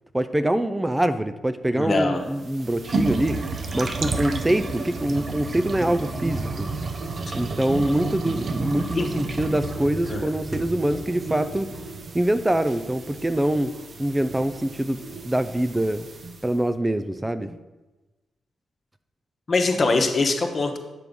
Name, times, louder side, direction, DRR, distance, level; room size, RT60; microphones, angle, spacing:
voice 1, 0.1-6.7 7.3-11.7 12.1-13.7 14.0-15.0 15.2-16.1 16.4-17.6, right 1 dB, 15° right, 11 dB, 0.4 m, -24 dB
voice 2, 1.7-2.2 8.9-9.1 10.1-10.2 19.5-20.8, left 3 dB, 50° left, 4 dB, 1.1 m, -22 dB
sound 1, 2.3-16.6, right 3 dB, 50° right, 0.7 m, -32 dB
6.8 x 4.6 x 5.3 m, 1.1 s
supercardioid pair, 55°, 0 cm